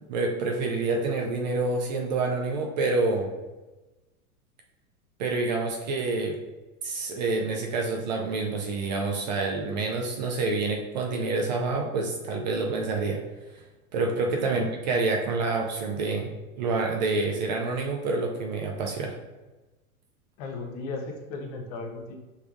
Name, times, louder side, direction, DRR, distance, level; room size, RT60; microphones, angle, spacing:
voice 1, 0.1-3.3 5.2-6.4 6.8-13.2 13.5-13.6 13.9-19.2, right 3 dB, 30° right, 1 dB, 0.4 m, -27 dB
voice 2, 20.4-22.2, left 3 dB, 30° left, 2 dB, 0.5 m, -36 dB
5.3 x 3.3 x 2.4 m, 1.1 s
figure-of-eight pair, 95°, 44 cm